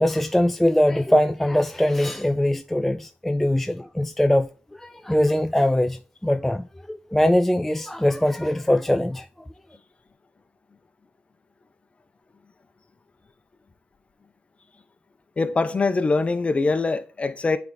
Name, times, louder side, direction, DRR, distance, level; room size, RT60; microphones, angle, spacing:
voice 1, 0.0-9.3, left 1 dB, 5° left, 0.3 m, -22 dB
voice 2, 15.4-17.6, left 3 dB, 30° left, 0.8 m, -23 dB
8.8 x 3.6 x 4.1 m
cardioid pair, 90°, 4 cm